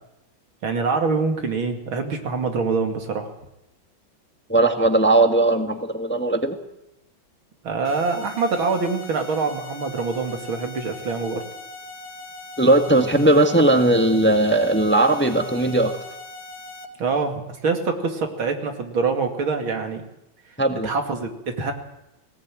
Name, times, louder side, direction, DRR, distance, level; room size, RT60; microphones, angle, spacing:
voice 1, 0.6-3.3 7.6-11.4 17.0-20.0 20.8-21.7, right 4 dB, 85° right, 5 dB, 3.2 m, -25 dB
voice 2, 4.5-6.6 12.6-16.0 20.6-20.9, right 2 dB, 5° left, 6 dB, 1.3 m, -18 dB
sound 1, 7.8-16.9, left 2 dB, 75° left, 2.4 m, -40 dB
19.0 x 18.5 x 9.1 m, 0.88 s
omnidirectional pair, 2.2 m